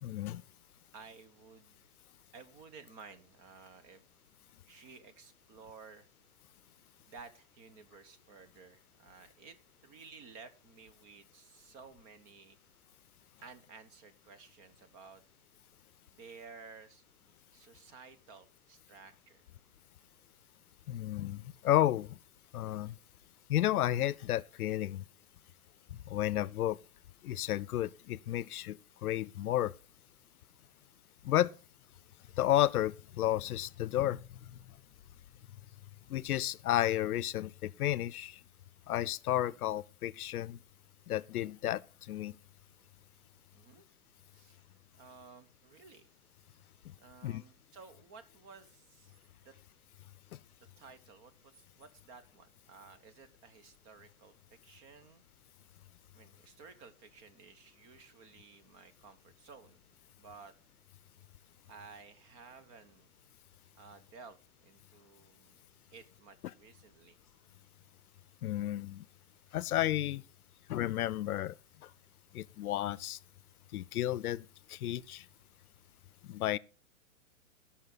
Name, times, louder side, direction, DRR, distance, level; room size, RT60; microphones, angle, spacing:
voice 1, 0.0-0.4 20.9-22.2 22.5-22.9 23.5-25.0 26.1-26.8 27.2-29.7 31.2-31.5 32.4-34.2 36.1-38.4 38.9-40.6 41.1-41.8 42.1-42.3 46.9-47.0 47.2-47.4 68.4-69.1 69.5-70.2 70.7-71.5 72.3-73.2 73.7-75.2 76.3-76.6, left 13 dB, 85° left, 0.6 m, -32 dB
voice 2, 0.9-1.9 2.3-4.0 4.7-6.1 7.0-9.6 9.8-12.6 13.4-15.2 16.1-17.0 17.5-19.4 43.5-43.8 44.3-44.6 45.0-46.1 47.0-49.5 50.8-55.2 56.1-59.8 60.2-60.5 61.7-63.1 63.8-65.6 65.9-67.2, right 5 dB, 30° right, 1.1 m, -55 dB
16.5 x 5.9 x 4.0 m
hypercardioid pair, 145°, 43 cm